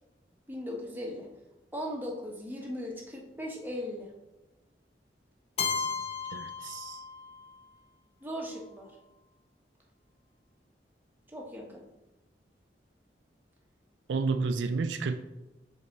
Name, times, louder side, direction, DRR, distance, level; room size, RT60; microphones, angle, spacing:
voice 1, 0.5-1.3 1.7-4.1 8.2-8.9 11.3-11.8, equal, 10° right, -1 dB, 0.9 m, -38 dB
Keyboard (musical), 5.6-7.5, left 6 dB, 35° left, 0.5 m, -34 dB
voice 2, 6.3-7.0 14.1-15.2, right 4 dB, 90° right, 9 dB, 0.4 m, -31 dB
6.7 x 3.5 x 4.0 m, 1.0 s
head